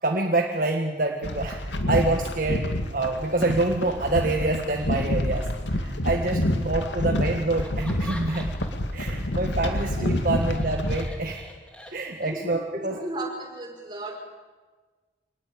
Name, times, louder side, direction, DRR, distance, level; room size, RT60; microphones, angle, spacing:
voice 1, 0.0-8.6 8.9-11.4 11.9-13.0, right 2 dB, 50° right, 2 dB, 1.6 m, -27 dB
sound 1, 1.2-11.1, left 1 dB, 85° left, 2.3 m, -28 dB
Laughter, 7.6-8.9 9.2-12.4, left 1 dB, 5° left, 2.6 m, -44 dB
voice 2, 12.2-14.1, right 1 dB, 25° right, 1 dB, 5.2 m, -35 dB
25.5 x 19.5 x 8.8 m, 1.3 s
head